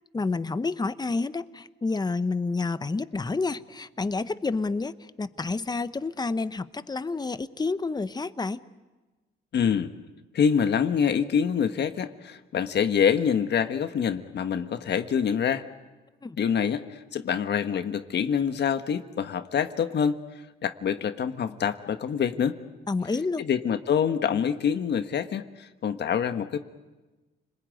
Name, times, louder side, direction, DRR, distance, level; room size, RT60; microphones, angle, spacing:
voice 1, 0.1-8.6 16.2-16.4 22.9-23.4, left 3 dB, 20° left, 13 dB, 1.0 m, -29 dB
voice 2, 9.5-9.9 10.3-15.6 16.4-20.2 20.6-22.6 23.4-26.6, left 7 dB, 60° left, 9 dB, 1.4 m, -26 dB
30.0 x 21.0 x 9.3 m, 1.2 s
cardioid pair, 90°, 20 cm